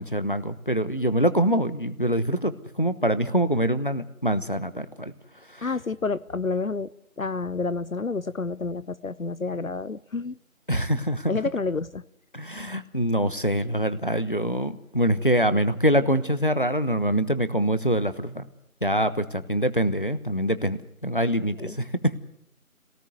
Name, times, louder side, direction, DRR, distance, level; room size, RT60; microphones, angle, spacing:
voice 1, 0.0-5.1 5.5-5.7 10.7-11.3 12.3-18.5 18.8-22.2, equal, 40° left, 13 dB, 1.0 m, -24 dB
voice 2, 5.6-6.9 7.2-10.4 11.3-12.0 21.6-21.8, left 4 dB, 70° left, 17 dB, 0.8 m, -29 dB
26.0 x 18.0 x 8.0 m, 0.78 s
figure-of-eight pair, 180°, 42 cm